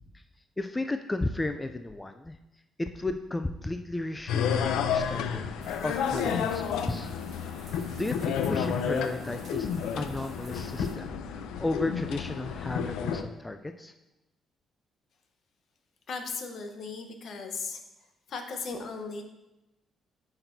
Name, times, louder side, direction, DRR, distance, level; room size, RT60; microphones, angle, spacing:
voice 1, 0.6-2.4 2.8-5.5 5.8-7.1 7.6-9.7 9.9-13.9, left 2 dB, 15° left, 7 dB, 0.4 m, -34 dB
sound 1, 4.3-13.2, left 7 dB, 90° left, 0.4 m, -31 dB
sound 2, 5.6-11.0, right 3 dB, 40° right, 1.0 m, -52 dB
voice 2, 16.1-17.8 18.3-19.2, left 4 dB, 65° left, 5 dB, 0.9 m, -36 dB
8.7 x 5.8 x 2.7 m, 0.95 s
cardioid pair, 90°, 0 cm